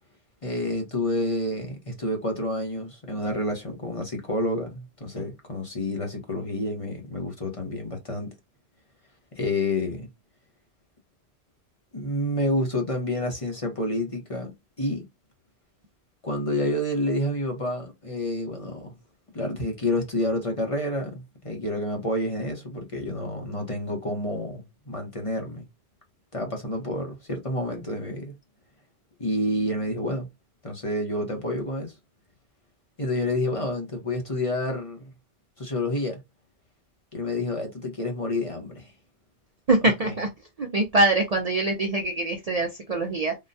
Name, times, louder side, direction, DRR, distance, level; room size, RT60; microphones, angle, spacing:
voice 1, 0.4-8.3 9.4-10.1 11.9-14.5 14.8-15.1 16.2-19.0 19.3-25.6 26.3-28.3 29.2-30.3 30.6-31.9 33.0-35.1 35.6-36.2 37.1-38.9 39.8-40.1, left 1 dB, 35° left, 1.0 m, -29 dB
voice 2, 39.7-40.3 40.6-43.3, right 2 dB, 45° right, 0.6 m, -23 dB
3.8 x 2.2 x 2.6 m
omnidirectional pair, 1.1 m